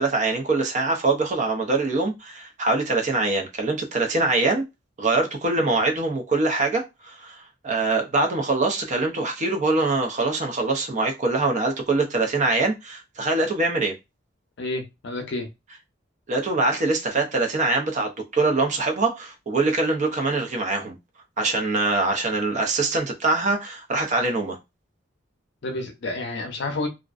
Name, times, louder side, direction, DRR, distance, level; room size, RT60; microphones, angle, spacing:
voice 1, 0.0-4.6 5.0-13.9 16.3-21.0 21.4-24.6, right 3 dB, 35° right, 0.5 m, -23 dB
voice 2, 14.6-15.5 25.6-26.9, left 2 dB, 60° left, 0.6 m, -29 dB
2.4 x 2.1 x 2.4 m
head